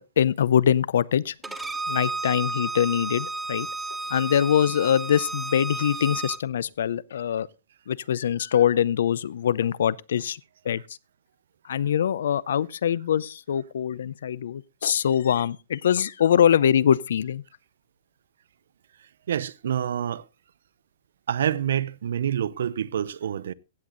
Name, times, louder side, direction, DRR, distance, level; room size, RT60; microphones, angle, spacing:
voice 1, 0.0-1.3 1.9-3.7 4.1-7.5 7.9-10.4 10.7-10.8 11.7-17.4, left 9 dB, 70° left, 0.6 m, -23 dB
Bowed string instrument, 1.4-6.4, right 3 dB, 5° right, 0.6 m, -32 dB
voice 2, 19.3-20.2 21.3-23.5, right 9 dB, 65° right, 0.6 m, -27 dB
16.0 x 7.9 x 3.9 m
hypercardioid pair, 165°, 0 cm